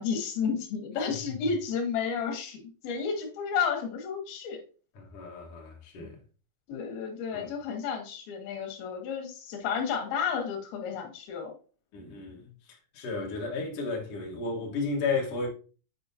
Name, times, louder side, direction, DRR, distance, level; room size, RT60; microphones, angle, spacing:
voice 1, 0.0-4.6 6.7-11.5, left 6 dB, 90° left, 3.0 m, -32 dB
voice 2, 5.0-6.2 7.3-7.5 11.9-12.4 12.9-15.5, left 4 dB, 55° left, 2.1 m, -33 dB
8.4 x 4.7 x 2.7 m
omnidirectional pair, 4.2 m